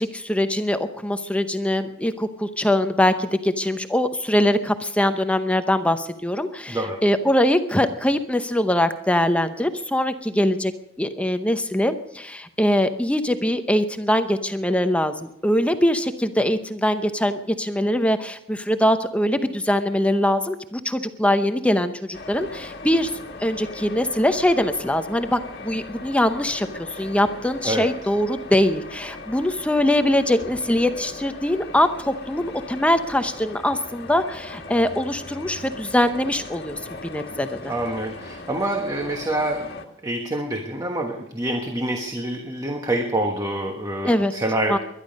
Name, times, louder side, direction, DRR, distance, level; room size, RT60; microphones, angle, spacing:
voice 1, 0.0-10.7 11.0-23.1 23.4-37.7 44.0-44.3 44.7-44.8, left 1 dB, 5° left, 9 dB, 0.7 m, -22 dB
voice 2, 6.7-7.0 27.6-27.9 37.7-39.8 40.0-44.8, right 1 dB, 20° right, 3 dB, 1.3 m, -26 dB
sound 1, 22.1-39.9, left 3 dB, 50° left, 1.6 m, -39 dB
21.0 x 11.5 x 5.3 m, 0.76 s
head